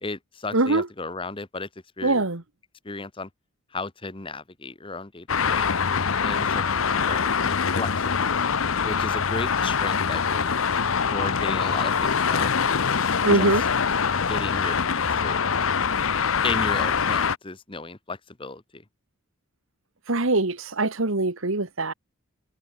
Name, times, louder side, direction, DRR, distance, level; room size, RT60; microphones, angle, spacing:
voice 1, 0.0-1.7 2.0-2.2 2.8-3.3 3.7-5.7 6.2-8.1 8.8-10.6 11.1-12.8 13.3-13.5 14.3-15.5 16.4-18.8, left 3 dB, 25° left, 1.1 m, -34 dB
voice 2, 0.5-0.9 2.0-2.4 13.2-13.6 20.1-21.9, right 2 dB, 70° right, 1.7 m, -22 dB
Traffic noise roadway noise, 5.3-17.4, left 6 dB, 70° left, 0.9 m, -24 dB
head